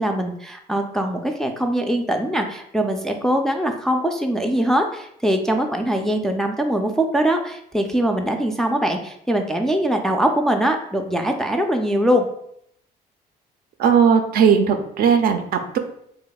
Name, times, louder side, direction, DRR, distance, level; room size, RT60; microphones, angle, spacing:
voice 1, 0.0-12.2, right 1 dB, 5° left, 3 dB, 0.3 m, -22 dB
voice 2, 13.8-15.8, right 7 dB, 60° right, 7 dB, 0.5 m, -17 dB
3.5 x 2.2 x 3.9 m, 0.71 s
cardioid pair, 110°, 17 cm